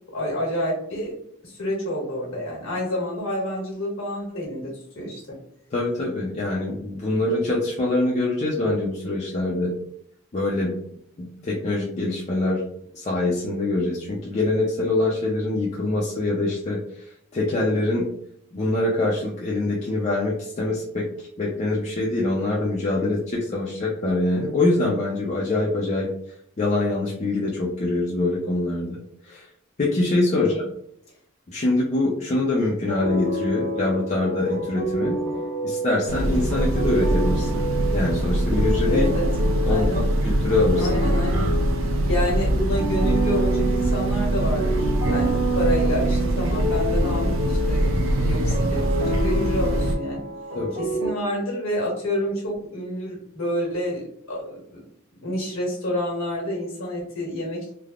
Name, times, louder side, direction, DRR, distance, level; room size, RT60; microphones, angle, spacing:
voice 1, 0.1-1.1 1.4-5.3 30.3-30.6 38.9-39.3 39.7-40.0 40.8-41.5 42.0-47.9 48.2-50.2 50.8-54.8 55.2-57.7, equal, 80° left, -3 dB, 1.3 m, -28 dB
voice 2, 5.7-9.7 10.3-10.7 11.2-12.6 12.9-16.8 17.3-18.1 18.5-21.1 21.4-26.1 26.6-29.0 29.2-29.5 29.8-30.6 31.5-35.2 35.6-37.6 37.9-39.1 39.6-40.9 50.5-50.7, left 2 dB, 35° left, -4 dB, 0.4 m, -24 dB
sound 1, 32.9-51.1, right 1 dB, 55° right, 0.9 m, -28 dB
Train, 36.1-49.9, right 1 dB, 75° right, 0.4 m, -23 dB
3.3 x 2.0 x 2.3 m, 0.69 s
head